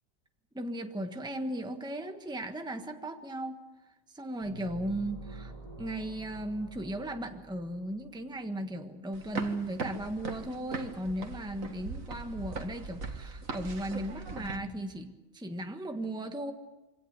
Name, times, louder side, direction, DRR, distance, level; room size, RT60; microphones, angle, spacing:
voice 1, 0.5-3.6 4.1-5.5 5.8-16.5, right 1 dB, 5° right, 5 dB, 1.4 m, -36 dB
sound 1, 4.4-8.1, right 2 dB, 25° right, 5.7 m, -47 dB
sound 2, 9.1-14.6, right 4 dB, 75° right, 2.2 m, -40 dB
24.5 x 18.0 x 8.0 m, 1.1 s
omnidirectional pair, 1.4 m